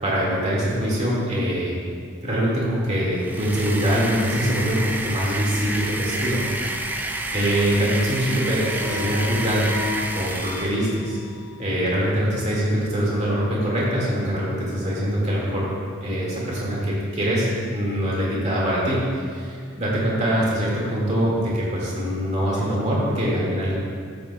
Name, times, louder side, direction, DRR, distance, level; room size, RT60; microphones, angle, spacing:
voice 1, 0.0-1.8 2.2-6.8 7.3-9.7 10.1-11.2 11.6-15.7 16.0-23.8, equal, 35° right, -6 dB, 2.1 m, -23 dB
sound 1, 3.1-10.9, right 1 dB, 10° right, 0.4 m, -29 dB
sound 2, 8.6-11.8, left 4 dB, 55° right, 2.0 m, -36 dB
12.5 x 8.5 x 2.4 m, 2.1 s
head